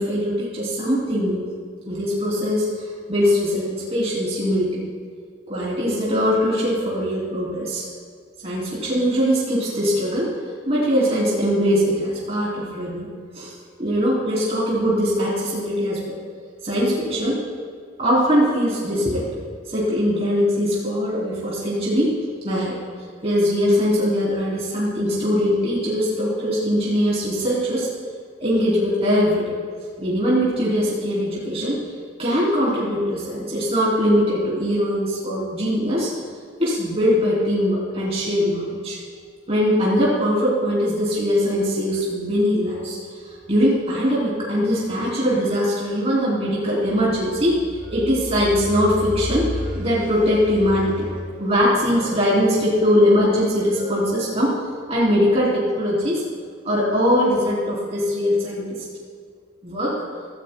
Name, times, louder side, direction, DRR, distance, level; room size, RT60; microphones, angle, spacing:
voice 1, 0.0-1.4 1.9-4.8 5.5-7.8 8.4-10.3 10.6-13.1 13.3-13.5 13.8-16.2 16.6-17.4 18.0-19.3 19.7-22.1 22.4-22.8 23.2-27.9 28.4-29.5 30.0-31.8 32.2-36.1 36.6-39.0 39.5-43.0 43.3-54.5 54.9-56.2 56.6-58.8 59.6-59.9, equal, 35° right, -6 dB, 3.2 m, -21 dB
17.0 x 14.5 x 2.3 m, 2.1 s
head